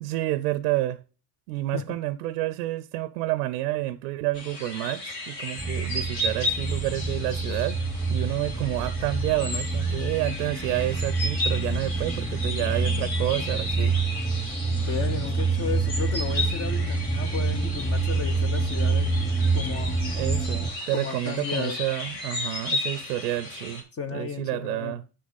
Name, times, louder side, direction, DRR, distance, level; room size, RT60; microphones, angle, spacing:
voice 1, 0.0-1.0 1.5-7.8 8.1-13.9 20.1-23.8 24.1-25.0, right 16 dB, 80° right, 0.6 m, -29 dB
sound 1, 4.3-23.8, left 2 dB, 85° left, 2.9 m, -34 dB
sound 2, 5.6-20.7, right 3 dB, ahead, 1.0 m, -27 dB
voice 2, 14.7-19.1 19.5-20.0 20.9-21.8 23.9-24.9, left 5 dB, 30° left, 1.0 m, -34 dB
9.5 x 6.4 x 4.0 m
hypercardioid pair, 65°, 47 cm